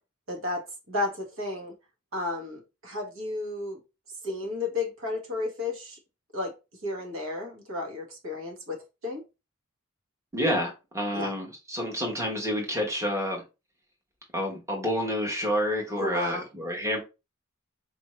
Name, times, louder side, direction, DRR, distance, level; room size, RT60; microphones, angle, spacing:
voice 1, 0.3-0.6 0.9-1.7 2.1-3.8 4.2-6.0 6.3-6.5 6.8-9.2 11.1-11.3 15.9-16.4, left 2 dB, 65° right, 1.3 m, -32 dB
voice 2, 10.3-13.4 14.3-17.0, equal, 15° right, 1.0 m, -29 dB
4.4 x 2.6 x 3.0 m
head